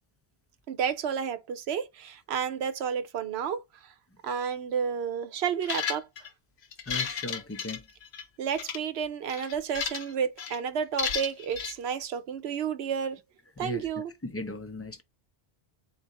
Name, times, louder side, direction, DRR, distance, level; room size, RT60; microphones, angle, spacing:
voice 1, 0.7-3.6 4.2-6.1 8.4-13.2 13.6-14.1, right 7 dB, 85° right, 0.9 m, -31 dB
sound 1, 5.6-6.3 6.7-8.2 8.5-8.8 9.3-10.1 10.4-10.6 11.0-11.7, left 7 dB, 85° left, 1.0 m, -33 dB
voice 2, 6.9-7.8 13.6-13.9 14.2-15.0, left 2 dB, 20° left, 0.4 m, -37 dB
4.0 x 2.9 x 3.6 m
omnidirectional pair, 1.0 m